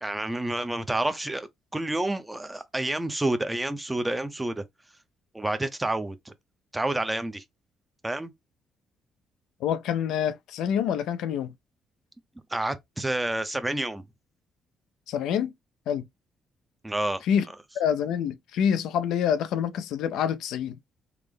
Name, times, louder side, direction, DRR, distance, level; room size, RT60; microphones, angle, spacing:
voice 1, 0.0-4.6 5.3-6.3 6.7-7.4 8.0-8.3 12.5-14.0 16.8-17.2, right 1 dB, 10° right, 0.6 m, -29 dB
voice 2, 9.6-11.5 15.1-15.5 15.9-16.1 17.3-17.4 17.8-20.8, left 8 dB, 85° left, 0.3 m, -26 dB
3.4 x 2.0 x 3.6 m
cardioid pair, 90°, 0 cm